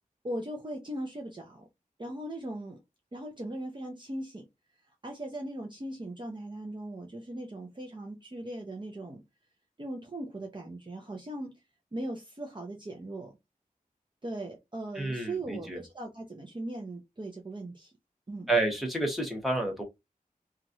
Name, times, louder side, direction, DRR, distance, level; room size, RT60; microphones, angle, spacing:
voice 1, 0.2-1.7 2.0-2.8 3.1-4.5 5.0-9.2 9.8-11.5 11.9-13.3 14.2-17.9 18.3-18.5, right 1 dB, 35° right, 0.7 m, -39 dB
voice 2, 15.0-15.8 18.5-19.8, right 2 dB, ahead, 1.2 m, -29 dB
3.0 x 2.5 x 2.6 m
wide cardioid pair, 70°, 15 cm